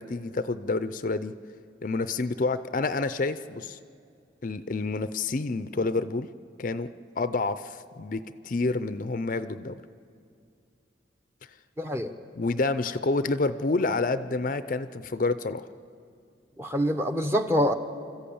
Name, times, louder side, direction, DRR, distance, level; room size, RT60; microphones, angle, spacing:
voice 1, 0.0-1.3 1.8-3.8 4.4-6.3 6.6-9.8 12.4-15.7, left 3 dB, 45° left, 12 dB, 0.5 m, -28 dB
voice 2, 11.8-12.1 16.6-17.8, equal, 15° right, 6 dB, 0.9 m, -25 dB
25.5 x 14.5 x 8.6 m, 2.4 s
head